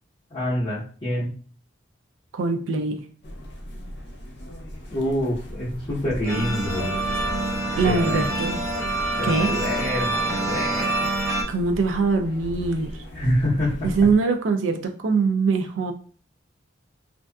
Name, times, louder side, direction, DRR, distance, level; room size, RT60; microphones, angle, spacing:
voice 1, 0.3-1.3 4.9-6.9 7.8-8.3 9.2-11.2 13.1-13.7, left 1 dB, 30° left, 0.8 m, -26 dB
voice 2, 2.3-3.0 7.7-8.6 9.2-9.6 11.5-13.0 13.8-15.9, right 4 dB, 85° right, 0.4 m, -23 dB
sound 1, 3.2-14.1, equal, 60° left, 0.5 m, -36 dB
sound 2, 6.2-11.4, right 2 dB, 15° right, 0.6 m, -26 dB
2.5 x 2.3 x 2.2 m
head